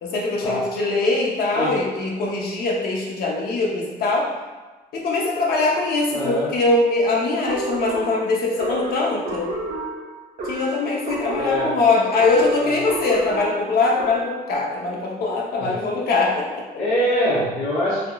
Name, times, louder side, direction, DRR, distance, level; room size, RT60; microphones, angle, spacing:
voice 1, 0.0-4.3 4.9-9.5 10.4-16.7, left 3 dB, 65° left, -2 dB, 0.7 m, -22 dB
voice 2, 6.1-6.5 11.3-11.7 12.6-12.7 15.6-15.8 16.8-18.0, equal, 50° left, -11 dB, 1.0 m, -23 dB
sound 1, 7.4-14.5, right 2 dB, 55° right, 0.8 m, -31 dB
3.5 x 2.4 x 2.2 m, 1.2 s
cardioid pair, 155°, 17 cm